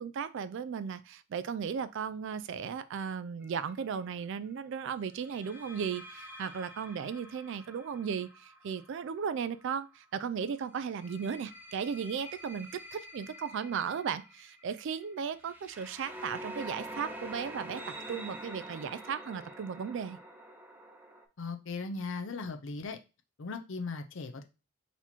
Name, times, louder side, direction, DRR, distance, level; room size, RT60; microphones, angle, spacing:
voice 1, 0.0-20.2, right 7 dB, 55° right, 13 dB, 0.3 m, -36 dB
sound 1, 3.4-3.7 5.2-10.0 10.8-21.2, right 1 dB, 10° right, 0.6 m, -47 dB
voice 2, 21.4-23.0 23.4-24.4, left 4 dB, 55° left, 7 dB, 0.6 m, -38 dB
4.1 x 2.9 x 4.3 m, 0.29 s
head